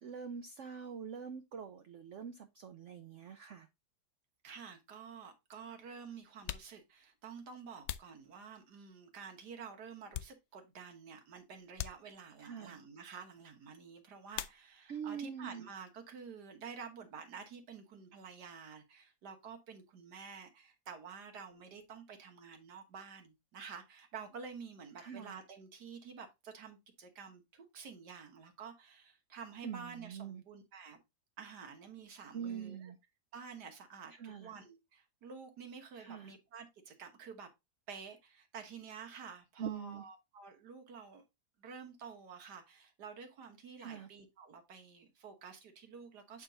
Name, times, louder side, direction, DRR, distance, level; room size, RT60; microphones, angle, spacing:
voice 1, 0.0-3.7 12.4-12.8 14.9-15.7 25.0-25.4 29.6-30.4 32.3-33.0 34.2-34.5 36.0-36.3 39.6-40.0 43.8-44.1, right 7 dB, 60° right, 0.8 m, -44 dB
voice 2, 4.4-31.0 31.4-32.9 33.3-37.5 37.9-41.2 41.6-46.4, right 6 dB, 85° right, 1.9 m, -50 dB
sound 1, 4.6-4.7 5.6-5.7 6.3-8.9 9.5-10.8 11.1-11.3 11.7-12.6 14.3-15.1 15.4-16.1 16.3-18.5, left 12 dB, 75° left, 1.0 m, -47 dB
8.1 x 3.7 x 3.8 m
omnidirectional pair, 1.7 m